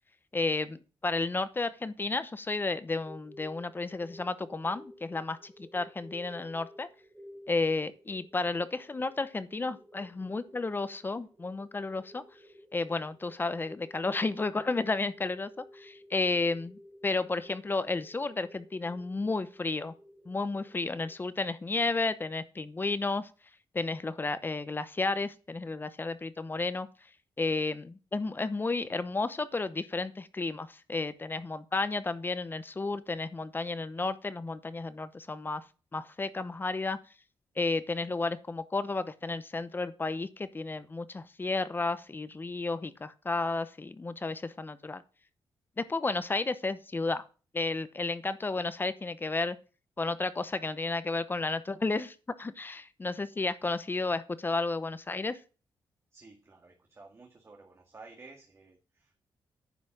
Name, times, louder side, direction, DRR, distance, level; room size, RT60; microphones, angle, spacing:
voice 1, 0.3-6.9 7.5-12.3 12.7-19.9 20.3-23.3 23.7-26.9 27.4-35.7 35.9-37.0 37.6-45.0 45.8-47.2 47.5-49.6 50.0-55.4, left 3 dB, 25° left, 14 dB, 0.8 m, -32 dB
sound 1, 2.9-21.2, equal, 15° right, 2.9 m, -54 dB
voice 2, 56.1-59.2, right 3 dB, 30° right, 2 dB, 1.9 m, -53 dB
10.0 x 5.6 x 7.7 m, 0.35 s
wide cardioid pair, 125°, 9 cm